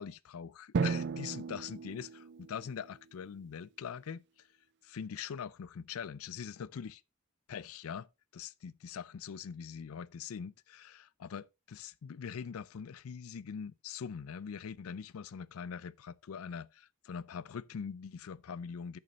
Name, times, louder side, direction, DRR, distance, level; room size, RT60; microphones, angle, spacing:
voice 1, 0.0-4.5 4.8-7.0 7.5-19.0, left 7 dB, 80° left, 0.4 m, -43 dB
Drum, 0.7-3.3, right 5 dB, 55° right, 0.4 m, -35 dB
8.6 x 6.9 x 3.9 m
head